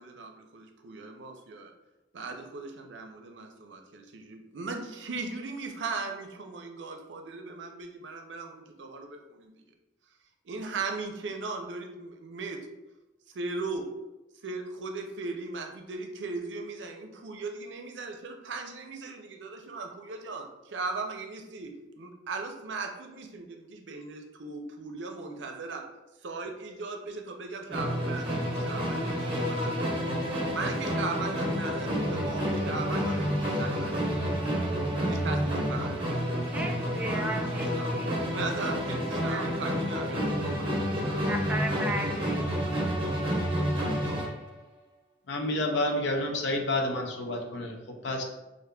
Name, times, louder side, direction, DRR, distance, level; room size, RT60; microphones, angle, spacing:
voice 1, 0.0-1.7 2.1-9.5 10.4-12.6 13.3-13.9 14.4-25.8 26.2-30.1 30.5-33.3 33.5-34.2 35.0-37.9 38.3-41.4, right 3 dB, 80° right, 4 dB, 0.5 m, -38 dB
Musical instrument, 27.7-44.4, equal, 30° right, 0.8 m, -29 dB
voice 2, 36.5-38.2 39.2-39.8 41.3-42.5, right 1 dB, 10° right, 3 dB, 0.3 m, -36 dB
voice 3, 45.3-47.7 48.0-48.2, left 1 dB, 75° left, 2 dB, 0.6 m, -29 dB
5.0 x 2.5 x 2.2 m, 1.0 s
head